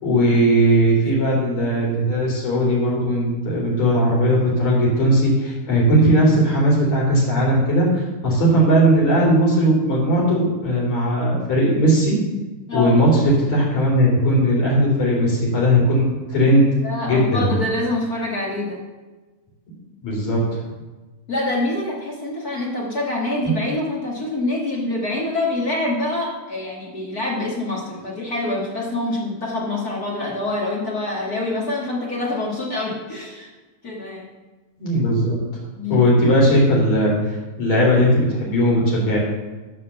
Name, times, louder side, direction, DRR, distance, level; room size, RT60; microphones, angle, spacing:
voice 1, 0.0-12.2 12.7-16.7 17.0-17.6 20.0-20.4 34.8-35.4 35.9-39.2, equal, 55° left, -4 dB, 4.8 m, -18 dB
voice 2, 16.8-18.8 21.3-33.5 33.8-34.3 35.8-36.0, left 2 dB, 35° left, -3 dB, 1.9 m, -25 dB
13.5 x 5.1 x 6.9 m, 1.2 s
omnidirectional pair, 3.9 m